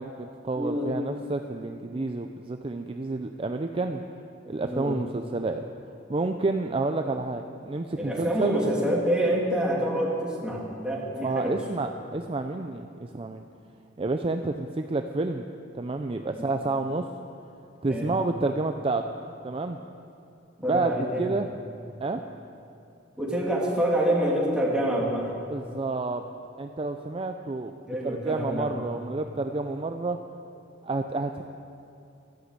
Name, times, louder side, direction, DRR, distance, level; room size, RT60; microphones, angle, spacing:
voice 1, 0.0-4.0 4.5-5.6 6.1-8.6 11.2-13.4 14.0-15.4 15.7-17.1 17.8-19.0 19.4-19.8 20.7-20.9 21.2-21.5 22.0-22.2 25.5-26.2 26.6-30.2 30.8-31.4, right 3 dB, 30° right, 6 dB, 0.5 m, -29 dB
voice 2, 0.6-0.9 4.6-5.0 8.0-11.6 16.3-16.5 17.9-18.1 20.6-21.4 23.2-25.3 27.9-28.7, right 1 dB, 5° right, -4 dB, 2.6 m, -27 dB
13.0 x 11.5 x 8.1 m, 2.7 s
head